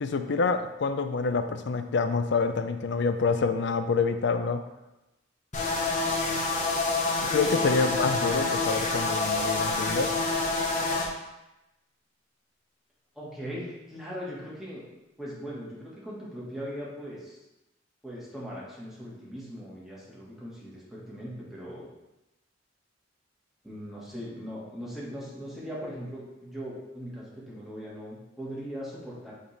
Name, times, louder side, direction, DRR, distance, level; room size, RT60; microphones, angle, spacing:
voice 1, 0.0-4.6 7.2-10.1, left 4 dB, 65° left, 8 dB, 0.5 m, -27 dB
sound 1, 5.5-11.1, left 3 dB, 40° left, 1.0 m, -27 dB
voice 2, 13.1-14.8 15.2-17.4 18.0-21.9 23.6-29.3, equal, ahead, -7 dB, 1.6 m, -39 dB
8.6 x 3.6 x 3.3 m, 0.95 s
head